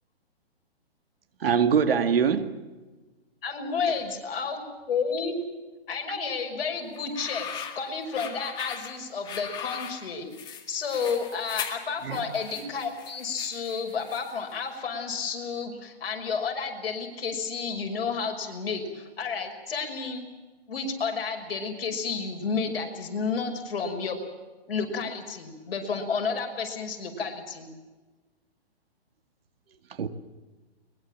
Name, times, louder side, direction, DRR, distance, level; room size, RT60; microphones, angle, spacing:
voice 1, 1.4-2.6 12.0-12.3 30.0-30.1, right 7 dB, 65° right, 2.3 m, -23 dB
voice 2, 3.4-4.6 4.9-5.4 5.9-20.3 20.7-24.2 24.7-27.7, left 5 dB, 60° left, 5.9 m, -31 dB
sound 1, 6.9-14.5, left 8 dB, 15° left, 2.1 m, -40 dB
22.5 x 22.0 x 7.5 m
hypercardioid pair, 160°, 32 cm